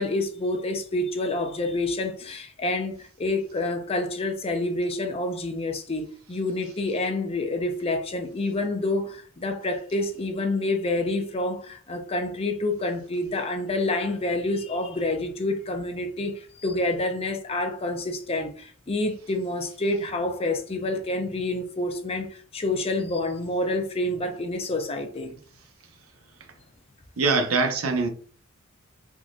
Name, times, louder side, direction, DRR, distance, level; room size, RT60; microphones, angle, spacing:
voice 1, 0.0-25.3, left 2 dB, 30° left, 0.5 m, -28 dB
voice 2, 27.2-28.1, right 4 dB, 80° right, 0.7 m, -23 dB
3.6 x 3.0 x 2.5 m
head